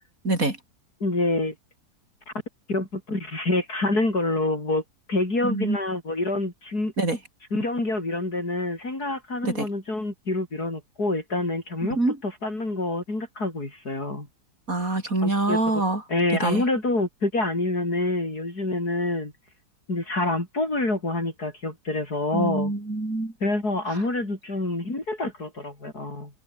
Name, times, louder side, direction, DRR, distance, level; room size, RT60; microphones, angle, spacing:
voice 1, 0.2-0.6 5.4-5.8 7.0-7.2 9.4-9.7 11.9-12.2 14.7-16.0 16.4-16.6 22.3-23.3 23.9-24.0, right 2 dB, 55° right, 6.2 m, -25 dB
voice 2, 1.0-1.5 2.7-4.8 5.1-6.9 7.5-12.0 12.2-14.3 15.2-15.6 16.1-19.3 19.9-22.7 23.4-26.3, left 2 dB, 70° left, 7.3 m, -27 dB
omnidirectional pair, 1.7 m